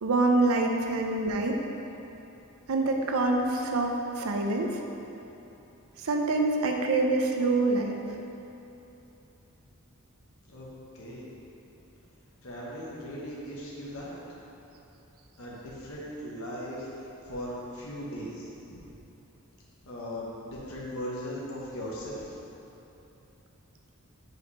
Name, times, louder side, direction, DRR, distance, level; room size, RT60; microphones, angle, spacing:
voice 1, 0.0-1.6 2.7-4.8 6.0-8.0, right 2 dB, 80° right, 2 dB, 0.6 m, -26 dB
voice 2, 10.9-11.3 12.4-14.5 15.4-16.9 17.2-19.0 19.9-22.4, equal, 70° left, -6 dB, 1.1 m, -38 dB
4.9 x 4.9 x 4.1 m, 3.0 s
head